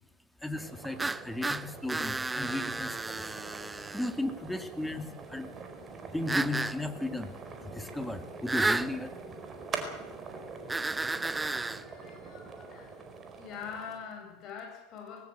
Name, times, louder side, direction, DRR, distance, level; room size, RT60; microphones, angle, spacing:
voice 1, 0.4-3.2 3.9-5.5 6.1-7.4 7.6-9.1, left 2 dB, 5° left, 8 dB, 2.3 m, -35 dB
sound 1, 0.5-14.0, right 4 dB, 30° right, 4.4 m, -44 dB
sound 2, 1.0-4.1 6.3-6.8 8.5-8.9 10.7-11.8, right 3 dB, 10° right, 0.8 m, -32 dB
voice 2, 11.4-12.9 13.4-15.3, left 6 dB, 45° left, 3 dB, 7.5 m, -44 dB
20.0 x 17.0 x 8.1 m, 0.92 s
figure-of-eight pair, 75°, 0 cm